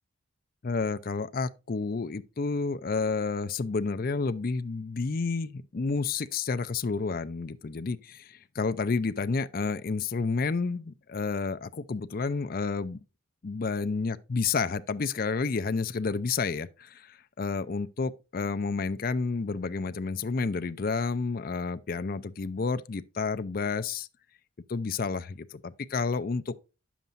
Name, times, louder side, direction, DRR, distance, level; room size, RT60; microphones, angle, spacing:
voice 1, 0.6-13.0 13.4-24.1 24.7-26.5, left 4 dB, 45° left, 0.5 m, -30 dB
9.2 x 7.2 x 2.5 m
head